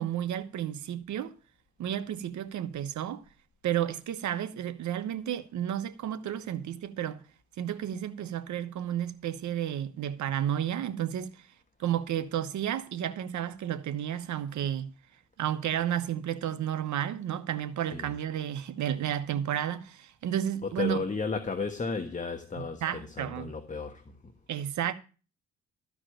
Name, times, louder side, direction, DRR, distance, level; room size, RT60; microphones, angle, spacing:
voice 1, 0.0-1.3 1.8-3.2 3.6-7.2 7.6-11.5 11.8-14.9 15.4-21.0 22.8-23.5 24.5-24.9, right 10 dB, 70° right, 1.2 m, -32 dB
voice 2, 20.6-24.3, left 4 dB, 25° left, 1.4 m, -34 dB
13.5 x 4.9 x 9.0 m
cardioid pair, 90°, 30 cm